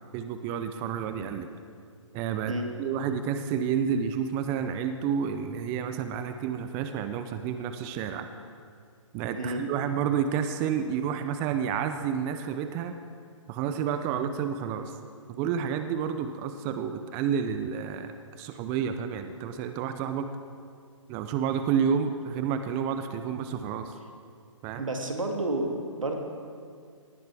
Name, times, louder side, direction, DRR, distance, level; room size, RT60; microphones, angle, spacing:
voice 1, 0.1-1.5 2.1-8.3 9.1-13.0 13.5-14.9 15.3-18.1 18.4-20.3 21.1-23.9 24.6-24.8, right 7 dB, 15° right, 8 dB, 0.4 m, -30 dB
voice 2, 24.8-26.2, right 1 dB, 80° right, 3 dB, 1.9 m, -30 dB
18.5 x 10.5 x 3.4 m, 2.2 s
figure-of-eight pair, 135°, 17 cm